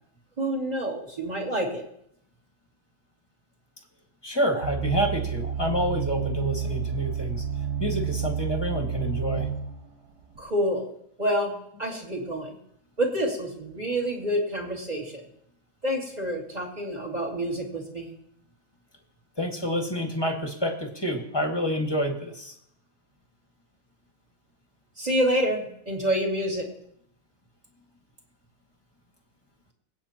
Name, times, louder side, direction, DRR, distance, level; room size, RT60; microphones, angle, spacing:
voice 1, 0.4-1.8 10.4-10.9 11.2-12.6 13.0-15.2 15.8-18.1 25.0-26.7, equal, 25° right, -1 dB, 2.7 m, -28 dB
voice 2, 4.2-7.4 7.8-9.5 19.4-22.5, equal, 15° left, 2 dB, 1.8 m, -28 dB
sound 1, 4.6-9.7 10.4-10.5, right 8 dB, 75° right, 2.6 m, -30 dB
25.0 x 9.1 x 2.9 m, 0.72 s
omnidirectional pair, 1.8 m